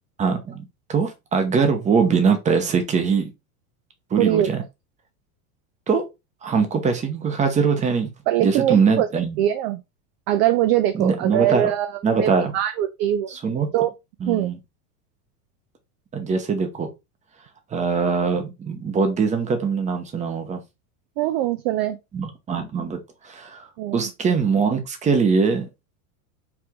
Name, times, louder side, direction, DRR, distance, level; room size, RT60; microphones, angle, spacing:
voice 1, 0.2-3.3 4.1-4.6 5.9-6.0 6.4-8.1 8.4-9.4 11.0-11.7 12.0-12.5 13.3-13.7 14.2-14.6 16.1-16.9 17.7-20.6 22.1-23.0 23.2-23.7 23.9-25.7, right 5 dB, 15° right, 0.8 m, -22 dB
voice 2, 4.2-4.5 8.3-9.1 9.4-9.8 10.3-11.9 12.2-13.3 13.7-13.9 14.3-14.5 21.2-22.0 23.8-24.1, right 12 dB, 45° right, 0.4 m, -22 dB
4.8 x 2.5 x 3.5 m
supercardioid pair, 145°, 47 cm